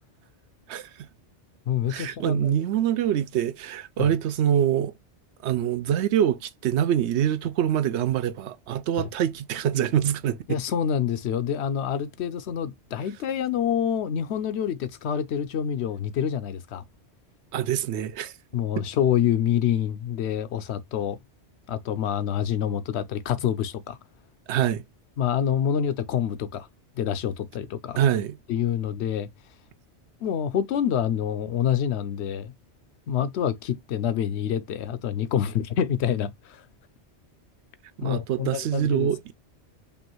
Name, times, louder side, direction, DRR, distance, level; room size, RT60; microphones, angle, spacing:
voice 1, 0.7-1.1 1.9-4.9 5.4-10.6 17.5-18.3 18.8-18.9 24.5-24.8 28.0-28.4 38.0-39.3, right 10 dB, 75° right, 0.8 m, -25 dB
voice 2, 1.7-2.5 4.0-4.1 9.0-9.1 10.5-16.8 18.5-21.2 21.7-24.0 25.2-26.7 27.0-28.0 28.5-29.3 30.2-32.5 33.1-36.6 38.0-39.1, left 9 dB, 70° left, 0.9 m, -27 dB
5.3 x 2.5 x 3.0 m
omnidirectional pair, 1.2 m